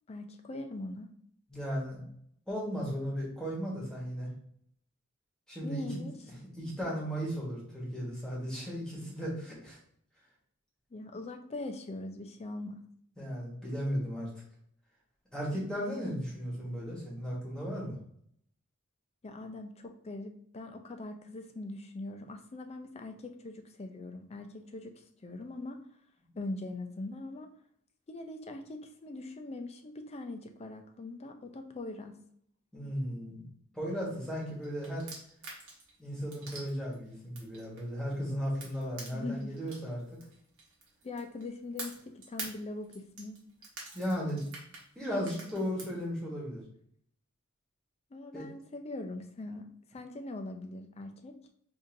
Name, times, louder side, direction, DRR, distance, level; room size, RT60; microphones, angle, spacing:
voice 1, 0.1-1.1 5.6-6.2 10.9-12.8 19.2-25.9 26.4-27.5 28.1-32.1 39.1-39.6 41.0-43.4 48.1-51.4, left 2 dB, 30° left, 6 dB, 0.4 m, -42 dB
voice 2, 1.5-2.0 2.5-4.3 5.5-6.0 6.6-9.8 13.2-14.3 15.3-18.0 32.7-33.5 33.7-35.1 36.0-40.0 43.9-44.4 44.9-46.6 48.3-48.5, equal, 5° left, -6 dB, 1.4 m, -35 dB
sound 1, 34.4-38.2 38.6-41.4 41.8-46.0, right 3 dB, 65° right, 1.1 m, -46 dB
5.1 x 2.6 x 2.6 m, 0.66 s
head